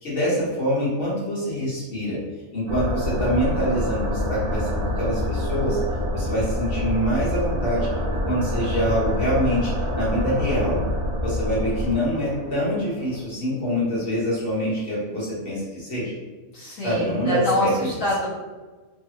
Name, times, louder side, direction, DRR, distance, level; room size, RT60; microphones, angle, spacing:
voice 1, 0.0-2.2 2.5-5.8 6.1-7.9 8.3-9.7 9.9-10.8 11.2-16.1 16.8-17.9, equal, 45° left, -7 dB, 1.4 m, -25 dB
sound 1, 2.7-13.2, left 1 dB, 55° right, 0.7 m, -27 dB
voice 2, 16.5-18.3, left 1 dB, 70° left, -8 dB, 1.2 m, -26 dB
3.3 x 2.3 x 2.9 m, 1.3 s
omnidirectional pair, 1.4 m